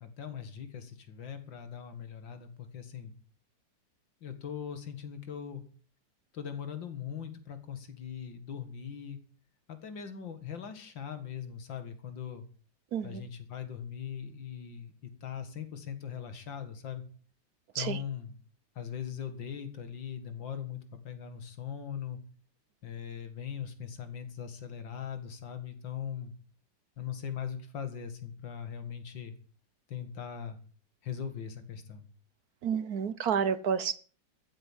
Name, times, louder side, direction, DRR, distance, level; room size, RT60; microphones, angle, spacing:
voice 1, 0.0-3.1 4.2-5.6 6.3-9.2 9.7-12.5 13.0-17.0 17.7-18.3 18.8-22.2 22.8-26.3 27.0-29.3 29.9-30.6 31.0-32.0, left 8 dB, 85° left, 2.6 m, -40 dB
voice 2, 12.9-13.2 17.7-18.0 32.6-34.0, right 7 dB, 60° right, 1.2 m, -30 dB
14.5 x 8.2 x 7.4 m
omnidirectional pair, 2.0 m